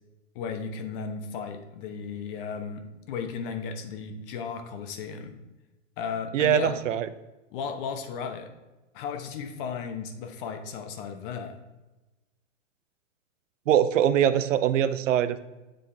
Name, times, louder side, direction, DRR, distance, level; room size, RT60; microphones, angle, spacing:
voice 1, 0.3-5.3 6.0-6.8 7.5-8.5 8.9-11.6, left 6 dB, 45° left, 6 dB, 1.0 m, -35 dB
voice 2, 6.3-7.1 13.7-15.4, right 10 dB, 75° right, 13 dB, 0.6 m, -23 dB
7.7 x 4.1 x 3.4 m, 1.1 s
hypercardioid pair, 130°, 38 cm